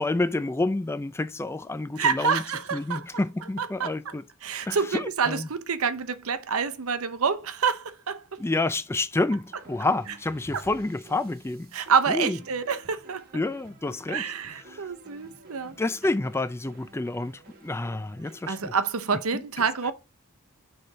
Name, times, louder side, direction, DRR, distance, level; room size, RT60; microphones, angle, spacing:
voice 1, 0.0-2.4 2.7-4.2 4.7-5.5 8.4-11.7 12.1-12.4 13.3-14.3 14.7-14.8 15.8-18.7 19.3-19.4, left 2 dB, 10° left, 0.3 m, -29 dB
voice 2, 2.0-3.0 3.6-3.9 4.4-8.2 11.7-13.2 14.1-15.7 18.5-19.9, right 6 dB, 75° right, 0.8 m, -27 dB
sound 1, 9.5-18.6, right 2 dB, 45° right, 1.4 m, -51 dB
6.6 x 3.4 x 5.4 m
head